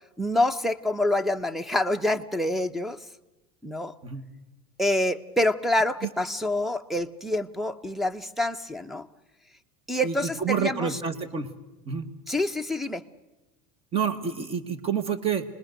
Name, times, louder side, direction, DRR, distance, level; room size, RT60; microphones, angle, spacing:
voice 1, 0.2-3.0 3.6-3.9 4.8-9.1 9.9-11.0 12.3-13.0, left 1 dB, ahead, 15 dB, 0.8 m, -26 dB
voice 2, 10.0-11.5 11.9-12.1 13.9-15.4, right 7 dB, 30° right, 11 dB, 1.7 m, -28 dB
28.5 x 20.5 x 6.6 m, 1.0 s
supercardioid pair, 140°, 19 cm